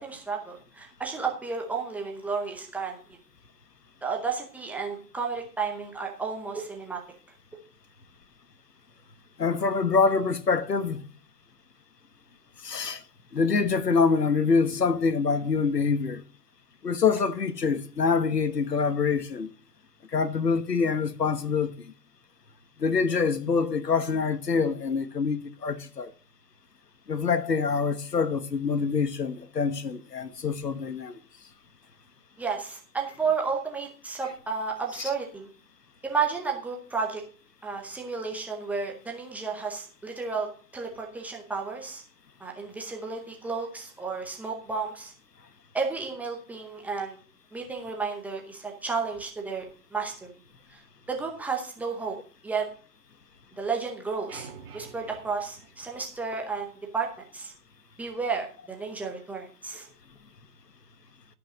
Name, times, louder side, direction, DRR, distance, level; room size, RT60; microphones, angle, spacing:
voice 1, 0.0-3.0 4.0-7.0 32.4-35.5 36.0-37.2 37.6-40.5 40.7-42.0 42.4-45.1 45.7-47.2 47.5-49.7 49.9-50.3 50.7-50.8 51.1-52.1 52.4-52.7 53.6-57.1 57.3-57.5 58.0-59.9, right 5 dB, 5° right, 0.7 m, -32 dB
voice 2, 9.4-11.0 12.6-13.0 13.3-16.2 16.8-19.5 20.1-21.7 22.8-26.1 27.1-31.1 35.0-35.1, left 5 dB, 85° left, 1.3 m, -25 dB
sound 1, 54.3-56.6, right 6 dB, 25° right, 2.6 m, -47 dB
12.5 x 5.5 x 6.0 m
figure-of-eight pair, 135°, 47 cm